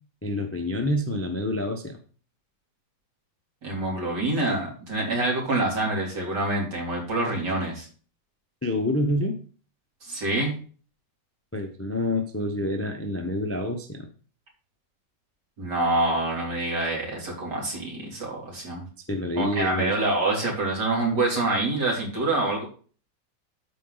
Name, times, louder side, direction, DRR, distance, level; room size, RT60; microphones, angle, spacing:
voice 1, 0.2-2.0 8.6-9.4 11.5-14.1 19.1-19.9, left 1 dB, 15° left, 5 dB, 0.5 m, -27 dB
voice 2, 3.6-7.9 10.0-10.5 15.6-18.9 19.4-22.7, right 2 dB, 70° right, -2 dB, 3.7 m, -26 dB
13.0 x 4.5 x 3.9 m, 0.40 s
omnidirectional pair, 1.9 m